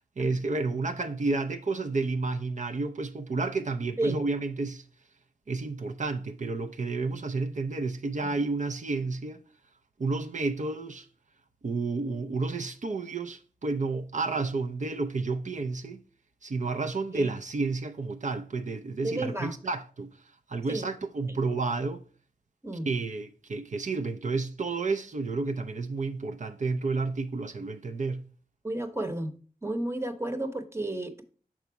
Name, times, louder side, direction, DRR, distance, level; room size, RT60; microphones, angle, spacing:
voice 1, 0.2-4.8 5.5-9.4 10.0-11.1 11.6-16.0 16.4-20.1 20.5-22.0 22.9-28.2, right 3 dB, 55° right, 0.5 m, -31 dB
voice 2, 19.0-19.5 20.7-20.9 21.3-21.4 22.6-22.9 28.6-29.3 29.6-31.2, right 1 dB, 15° right, 0.9 m, -32 dB
6.0 x 4.0 x 4.6 m
wide cardioid pair, 60°, 15 cm